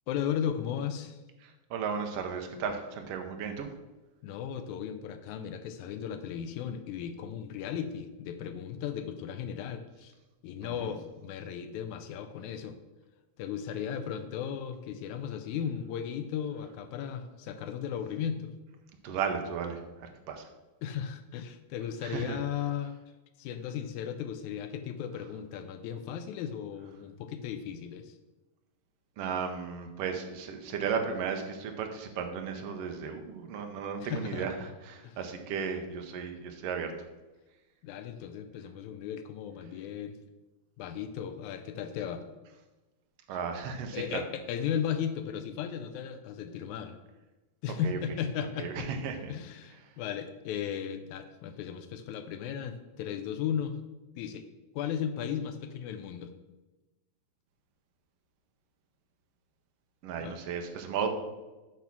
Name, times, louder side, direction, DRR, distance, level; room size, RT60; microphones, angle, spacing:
voice 1, 0.1-1.2 4.2-10.1 10.4-12.8 13.4-18.5 20.8-23.0 23.4-28.1 34.0-34.5 35.0-35.3 37.8-40.2 40.8-42.3 43.9-47.0 47.6-48.9 49.3-53.8 54.2-54.5 54.8-56.3 60.2-60.4, left 8 dB, 85° left, 8 dB, 2.0 m, -36 dB
voice 2, 1.7-3.7 10.6-10.9 19.0-19.8 20.3-20.4 22.0-22.4 29.2-34.5 34.8-36.9 43.3-44.2 47.8-48.0 48.6-49.3 60.0-61.1, right 6 dB, 70° right, 5 dB, 1.6 m, -34 dB
8.3 x 3.6 x 5.8 m, 1.1 s
omnidirectional pair, 3.4 m